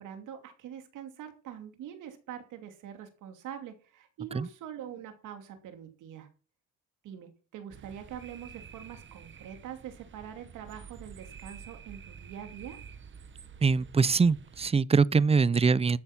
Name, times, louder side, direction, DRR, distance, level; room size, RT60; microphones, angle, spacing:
voice 1, 0.0-6.3 7.0-12.8, right 9 dB, 85° right, 2.7 m, -44 dB
sound 1, 7.7-14.7, right 6 dB, 40° right, 1.1 m, -49 dB
voice 2, 13.6-16.0, right 5 dB, 20° right, 0.5 m, -23 dB
13.0 x 6.4 x 7.2 m
cardioid pair, 90°, 30 cm